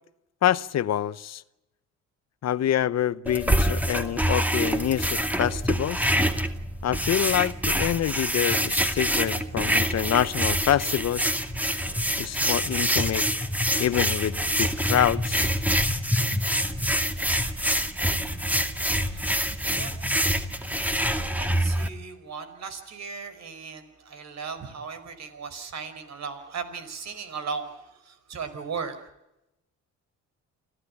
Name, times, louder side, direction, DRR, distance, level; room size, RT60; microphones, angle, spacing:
voice 1, 0.4-1.4 2.4-6.1 6.8-11.3 12.2-13.3 13.8-15.5, left 11 dB, 60° left, 1.0 m, -26 dB
sound 1, 3.3-21.9, equal, 5° right, 2.2 m, -26 dB
voice 2, 20.6-29.0, right 5 dB, 60° right, 5.0 m, -37 dB
28.0 x 15.0 x 10.0 m
cardioid pair, 90°, 30 cm